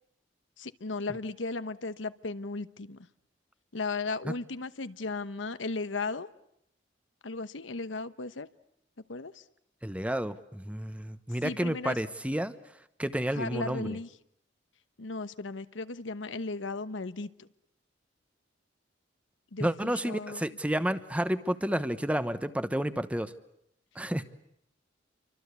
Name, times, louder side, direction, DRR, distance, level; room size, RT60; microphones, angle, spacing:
voice 1, 0.6-3.0 3.7-6.3 7.2-8.5 9.1-9.4 11.4-12.0 13.3-14.1 15.0-17.5 19.5-20.4, left 3 dB, 85° left, 13 dB, 1.0 m, -36 dB
voice 2, 9.8-12.5 13.0-14.0 19.6-23.3 24.0-24.2, right 1 dB, 5° right, 12 dB, 1.0 m, -30 dB
28.5 x 24.5 x 8.3 m, 0.77 s
head